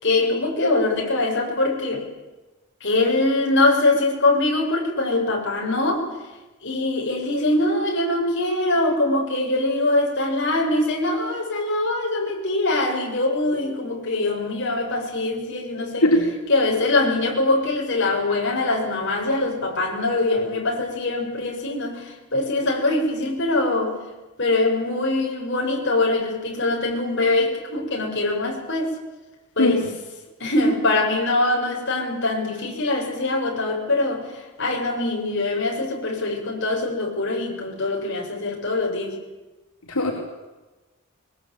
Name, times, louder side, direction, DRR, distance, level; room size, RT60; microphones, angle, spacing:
voice 1, 0.0-2.1 2.8-6.1 6.6-16.1 16.5-24.0 24.4-29.0 29.6-29.9 30.4-39.2, left 2 dB, 55° left, 0 dB, 7.2 m, -23 dB
voice 2, 29.6-29.9 39.9-40.1, left 1 dB, 85° left, -1 dB, 4.5 m, -19 dB
24.5 x 22.5 x 8.9 m, 1.1 s
head